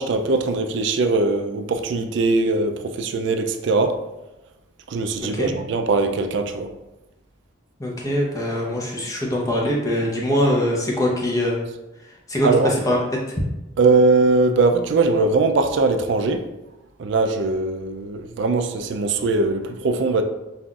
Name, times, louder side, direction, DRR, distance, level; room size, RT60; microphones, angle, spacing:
voice 1, 0.0-4.0 4.9-6.7 12.4-12.7 13.8-16.4 17.0-20.2, right 3 dB, 60° right, 0.3 m, -20 dB
voice 2, 5.2-5.5 7.8-11.6 12.3-12.5 12.8-13.0, left 1 dB, 15° left, 0.6 m, -22 dB
5.4 x 2.5 x 2.3 m
head